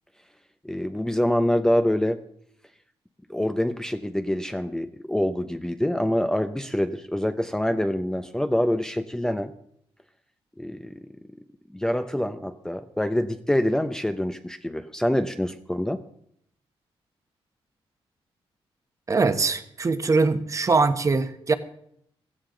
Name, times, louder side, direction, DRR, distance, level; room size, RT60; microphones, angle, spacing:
voice 1, 0.6-2.2 3.3-9.5 10.6-11.0 11.7-16.0, left 1 dB, 5° left, 8 dB, 0.7 m, -25 dB
voice 2, 19.1-21.5, right 4 dB, 30° right, 9 dB, 1.2 m, -22 dB
16.0 x 15.0 x 3.9 m, 0.69 s
cardioid pair, 105°, 10 cm